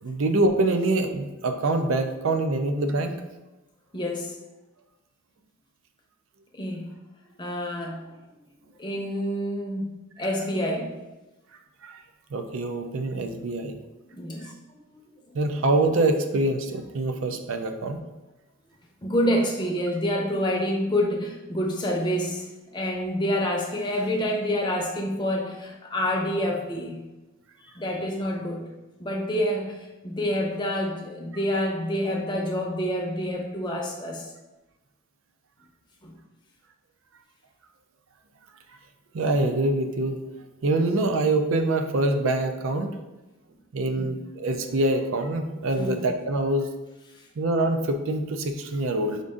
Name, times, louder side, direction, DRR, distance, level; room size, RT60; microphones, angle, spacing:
voice 1, 0.0-3.1 11.8-12.0 12.3-13.7 14.4-14.5 15.3-18.0 39.1-40.2 40.6-42.9 43.7-46.7 47.4-49.2, right 2 dB, 65° right, 6 dB, 0.5 m, -25 dB
voice 2, 3.9-4.3 6.5-6.9 7.4-8.1 8.8-10.9 14.2-15.1 19.0-22.5 22.7-27.0 27.7-28.7 29.0-29.8 30.0-34.3 36.0-36.1 43.9-44.3 45.8-46.0, equal, 20° left, 0 dB, 0.6 m, -27 dB
5.2 x 2.5 x 3.6 m, 1.1 s
head